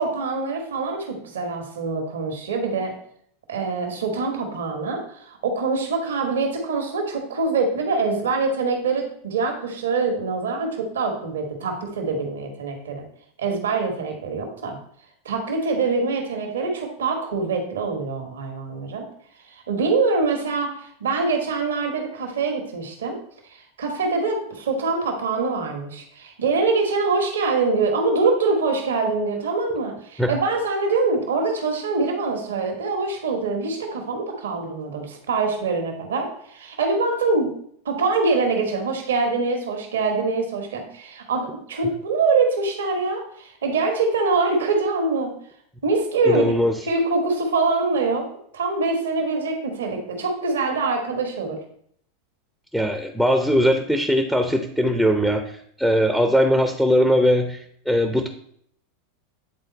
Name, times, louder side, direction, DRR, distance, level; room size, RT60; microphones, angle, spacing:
voice 1, 0.0-3.0 3.5-13.0 13.4-14.8 15.2-19.1 19.5-23.2 23.4-37.5 37.8-45.3 45.8-46.5 46.8-48.3 48.5-51.6, right 3 dB, 80° right, 3 dB, 1.4 m, -24 dB
voice 2, 46.2-46.8 52.7-57.6 57.9-58.3, equal, ahead, 5 dB, 0.7 m, -20 dB
9.0 x 3.9 x 4.0 m, 0.65 s
hypercardioid pair, 95°, 0 cm